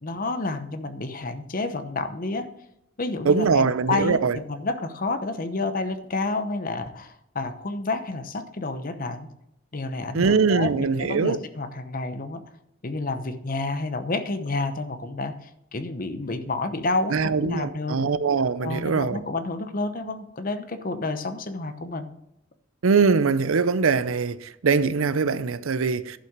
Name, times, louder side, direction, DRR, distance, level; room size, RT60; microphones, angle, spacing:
voice 1, 0.0-2.5 3.0-9.3 9.7-12.4 12.8-18.0 18.6-22.1, left 3 dB, 45° left, 0.9 m, -30 dB
voice 2, 3.2-4.4 10.1-11.4 17.1-19.2 22.8-26.2, right 5 dB, 85° right, 0.6 m, -22 dB
11.0 x 5.8 x 7.3 m
head